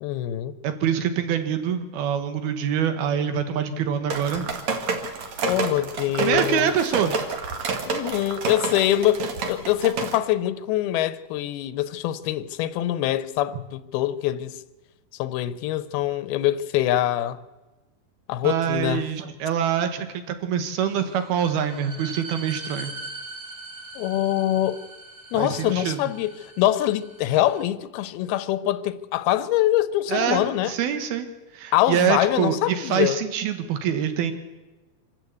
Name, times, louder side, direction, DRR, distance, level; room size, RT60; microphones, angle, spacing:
voice 1, 0.0-0.5 5.4-6.7 7.9-14.6 15.2-17.4 18.3-19.0 24.0-24.8 25.3-30.7 31.7-33.2, left 13 dB, 85° left, 2.7 m, -24 dB
voice 2, 0.6-4.5 6.2-7.2 18.4-22.9 25.3-26.0 30.1-31.3 31.5-34.3, right 8 dB, 85° right, 3.5 m, -25 dB
sound 1, 4.1-10.2, right 4 dB, 55° right, 2.8 m, -29 dB
sound 2, 20.9-27.6, right 2 dB, 40° right, 2.5 m, -41 dB
26.0 x 13.0 x 8.4 m
omnidirectional pair, 4.3 m